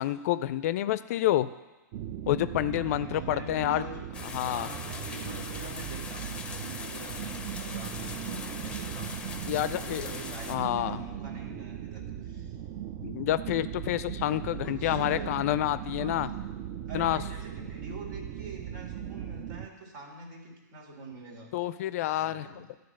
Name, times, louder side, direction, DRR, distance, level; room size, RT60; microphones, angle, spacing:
voice 1, 0.0-1.5 2.3-3.8 4.3-4.7 9.5-10.1 10.5-11.0 13.0-16.3 16.9-17.2 21.5-22.5, left 13 dB, 55° left, 14 dB, 0.4 m, -28 dB
sound 1, 1.9-19.7, right 10 dB, 40° right, 0.5 m, -38 dB
voice 2, 2.7-4.1 4.5-9.2 9.6-12.6 13.0-13.4 14.2-15.5 16.0-16.4 16.9-21.5 22.1-22.8, right 2 dB, 65° right, 0 dB, 2.4 m, -45 dB
sound 2, 4.1-10.6, left 4 dB, 10° left, 0.6 m, -41 dB
12.0 x 4.0 x 6.4 m, 1.2 s
hypercardioid pair, 125°, 10 cm